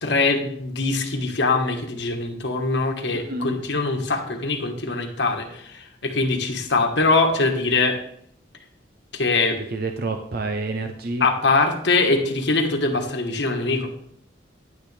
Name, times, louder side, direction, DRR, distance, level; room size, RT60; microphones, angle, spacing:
voice 1, 0.0-8.0 9.1-9.6 11.2-13.9, left 3 dB, 65° left, 3 dB, 1.3 m, -22 dB
voice 2, 3.1-3.6 9.7-11.3, right 3 dB, 55° right, 6 dB, 0.6 m, -28 dB
10.0 x 9.5 x 3.3 m, 0.69 s
head